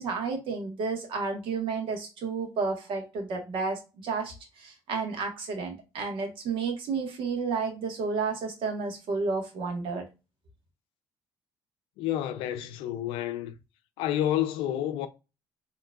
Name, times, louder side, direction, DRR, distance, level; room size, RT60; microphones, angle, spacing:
voice 1, 0.0-10.1, right 4 dB, 70° right, 1.3 m, -31 dB
voice 2, 12.0-13.5 14.0-15.1, left 12 dB, 85° left, 0.5 m, -29 dB
4.9 x 3.0 x 2.3 m
supercardioid pair, 75°, 9 cm